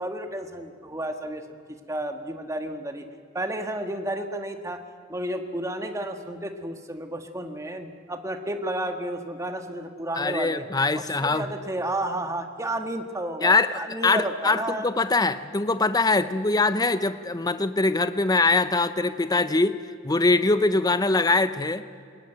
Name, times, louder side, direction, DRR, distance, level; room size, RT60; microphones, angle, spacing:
voice 1, 0.0-1.4 1.9-3.0 3.3-4.8 5.1-10.6 10.9-14.9, right 1 dB, 15° right, 6 dB, 1.6 m, -32 dB
voice 2, 10.2-11.5 13.4-13.7 14.0-19.8 20.0-21.8, left 3 dB, 20° left, 12 dB, 0.7 m, -22 dB
23.0 x 20.0 x 9.1 m, 2.2 s
head